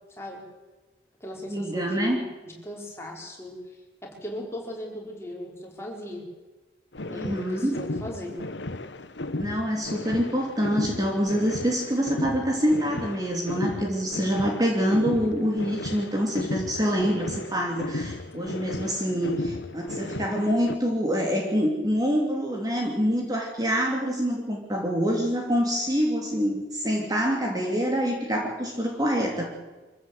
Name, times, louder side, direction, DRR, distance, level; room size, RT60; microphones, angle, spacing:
voice 1, 0.1-0.4 1.2-3.5 4.0-6.2 7.1-8.3, equal, 15° left, -1 dB, 4.8 m, -38 dB
voice 2, 1.5-2.2 7.1-7.8 9.4-29.5, equal, 20° right, 0 dB, 2.9 m, -26 dB
sound 1, 6.9-20.8, left 2 dB, 80° left, 1.2 m, -35 dB
25.5 x 15.0 x 8.0 m, 1.2 s
head